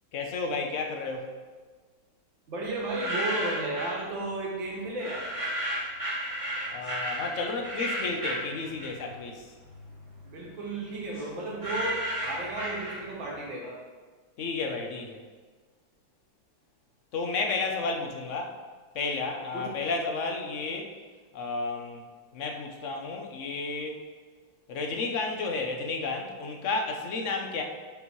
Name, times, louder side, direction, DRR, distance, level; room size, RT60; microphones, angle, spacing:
voice 1, 0.1-1.3 6.7-9.5 14.4-15.2 17.1-18.5 18.9-20.9 21.3-22.0 22.3-24.0 24.7-27.6, left 3 dB, 50° left, 2 dB, 0.9 m, -32 dB
voice 2, 2.5-5.3 10.2-13.8 19.5-19.7, right 2 dB, 70° right, -3 dB, 2.4 m, -34 dB
sound 1, 2.7-4.0 5.0-9.2 9.6-13.3, right 1 dB, 15° right, 2.1 m, -33 dB
11.0 x 5.4 x 3.2 m, 1.4 s
omnidirectional pair, 2.2 m